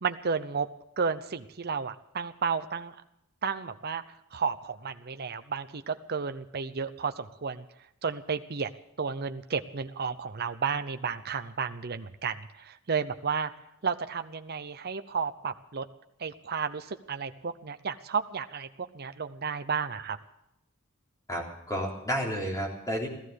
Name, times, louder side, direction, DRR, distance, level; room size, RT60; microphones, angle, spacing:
voice 1, 0.0-0.7 1.0-2.9 3.4-4.0 4.3-7.7 8.0-8.7 9.0-13.5 13.8-15.8 16.2-20.2, right 5 dB, 50° right, 9 dB, 0.7 m, -32 dB
voice 2, 21.3-23.1, equal, 15° left, -2 dB, 3.7 m, -31 dB
15.0 x 14.5 x 6.5 m, 0.80 s
head